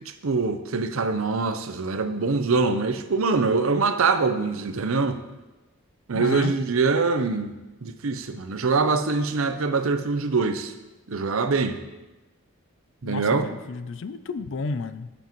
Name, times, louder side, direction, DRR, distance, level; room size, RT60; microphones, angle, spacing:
voice 1, 0.2-5.2 6.1-7.5 7.8-10.7 11.1-11.8 13.0-13.5, right 4 dB, 65° right, 8 dB, 0.6 m, -24 dB
voice 2, 6.1-6.5 13.0-15.1, left 4 dB, 55° left, 12 dB, 0.4 m, -31 dB
11.0 x 7.1 x 3.0 m, 1.1 s
head